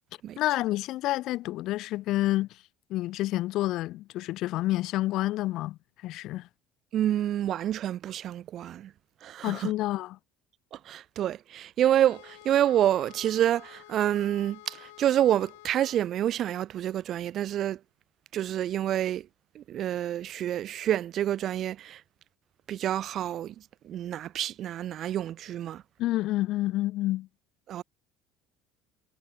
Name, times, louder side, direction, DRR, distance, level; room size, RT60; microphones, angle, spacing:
voice 1, 0.4-2.5 2.9-6.5 9.4-10.2 26.0-27.3, left 16 dB, 65° left, 0.5 m, -29 dB
voice 2, 6.9-8.9 9.2-9.7 10.9-17.8 18.3-19.2 19.6-22.0 22.7-23.5 23.9-25.8 27.7-27.8, right 11 dB, 55° right, 0.4 m, -28 dB
sound 1, 11.8-16.0, left 22 dB, 80° left, 5.1 m, -50 dB
hypercardioid pair, 70°, 0 cm